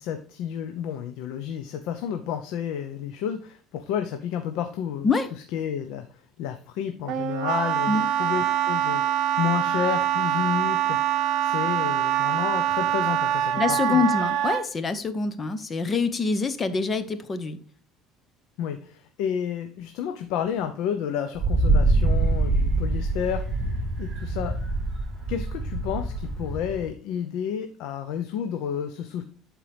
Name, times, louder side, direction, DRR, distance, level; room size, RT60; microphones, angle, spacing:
voice 1, 0.0-5.1 5.5-9.0 9.4-11.0 11.4-14.0 18.6-23.4 24.0-24.5 25.3-29.2, left 8 dB, 75° left, 7 dB, 0.7 m, -31 dB
Wind instrument woodwind instrument, 7.1-14.6, right 11 dB, 65° right, 0.8 m, -24 dB
voice 2, 13.6-17.6, left 4 dB, 25° left, 12 dB, 0.8 m, -25 dB
Wind, 21.4-26.9, right 2 dB, 25° right, 3.2 m, -25 dB
11.0 x 4.5 x 3.4 m, 0.43 s
cardioid pair, 140°, 0 cm